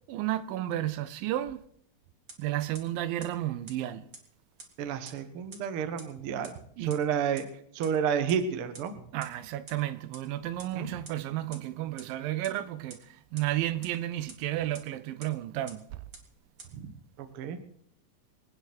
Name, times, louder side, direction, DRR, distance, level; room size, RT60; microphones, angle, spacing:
voice 1, 0.1-1.6 2.4-4.0 6.8-7.0 9.1-13.0 13.3-15.8, right 14 dB, 80° right, 2.4 m, -32 dB
sound 1, 2.3-2.4 2.7-2.8 3.2-3.3 3.7-3.8 4.1-4.2 4.6-4.7 5.1-5.2 5.5-5.6 6.0-6.1 6.4-6.5 6.9-7.0 7.4-7.5 7.8-7.9 8.3-8.4 8.7-8.8 9.2-9.3 9.7-9.8 10.1-10.2 10.6-10.7 11.1-11.2 11.5-11.6 12.0-12.1 12.4-12.5 12.9-13.0 13.4-13.5 13.8-13.9 14.3-14.4 14.7-14.8 15.2-15.3 15.7-15.8 16.1-16.2 16.6-16.7, right 3 dB, 30° right, 2.0 m, -45 dB
voice 2, 4.8-6.5 6.8-7.4 7.7-8.9 10.7-10.9 17.2-17.6, right 7 dB, 60° right, 1.4 m, -30 dB
25.0 x 9.5 x 4.3 m
omnidirectional pair, 4.1 m